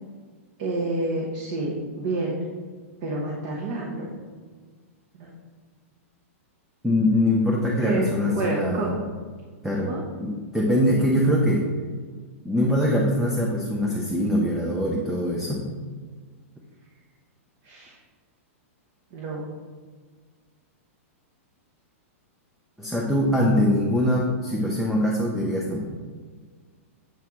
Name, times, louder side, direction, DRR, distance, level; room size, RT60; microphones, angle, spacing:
voice 1, 0.6-2.4 3.0-4.1 5.1-5.3 7.8-8.9 9.8-10.0 17.6-18.0 19.1-19.5, right 2 dB, 35° right, -3 dB, 0.9 m, -28 dB
voice 2, 6.8-8.9 9.6-9.9 10.2-11.7 12.4-15.7 22.8-25.8, left 1 dB, ahead, -3 dB, 0.4 m, -23 dB
7.6 x 4.5 x 3.5 m, 1.6 s
supercardioid pair, 180°, 8 cm